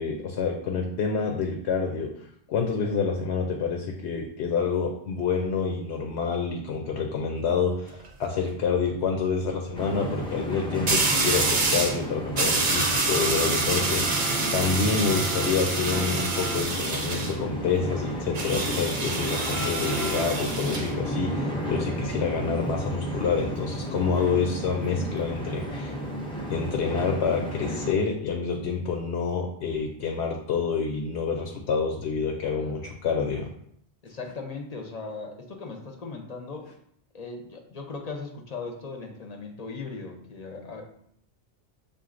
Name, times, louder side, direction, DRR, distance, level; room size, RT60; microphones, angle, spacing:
voice 1, 0.0-2.1 2.5-25.9 26.5-33.5, left 5 dB, 80° left, 3 dB, 0.8 m, -28 dB
sound 1, 7.7-8.1 10.9-12.0 12.4-17.4 18.3-20.9, right 3 dB, 55° right, 0.7 m, -27 dB
sound 2, 9.7-27.9, equal, 5° left, 0.5 m, -33 dB
voice 2, 32.5-32.9 34.0-36.7 37.1-40.9, left 4 dB, 45° left, 2 dB, 0.6 m, -38 dB
6.8 x 2.5 x 2.5 m, 0.70 s
omnidirectional pair, 1.1 m